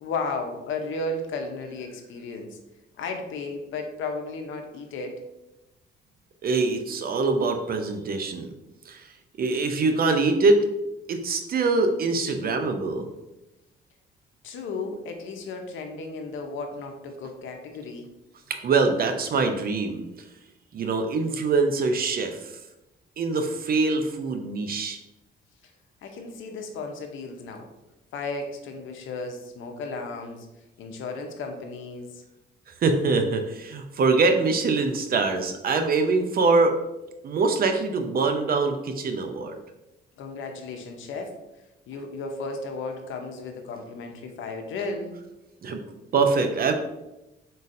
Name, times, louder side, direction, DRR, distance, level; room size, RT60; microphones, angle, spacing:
voice 1, 0.0-2.6 3.0-5.2 14.4-18.1 26.0-27.7 28.1-30.5 30.8-32.2 40.2-41.4 41.9-45.2, left 3 dB, 75° left, 4 dB, 0.7 m, -34 dB
voice 2, 6.4-8.5 8.9-9.1 9.4-10.6 11.1-13.1 18.5-20.0 20.7-22.5 23.2-25.0 32.8-36.8 37.2-39.5 45.6-45.8 46.1-46.7, right 3 dB, 50° right, 6 dB, 0.6 m, -23 dB
4.0 x 3.8 x 2.6 m, 0.95 s
cardioid pair, 90°, 20 cm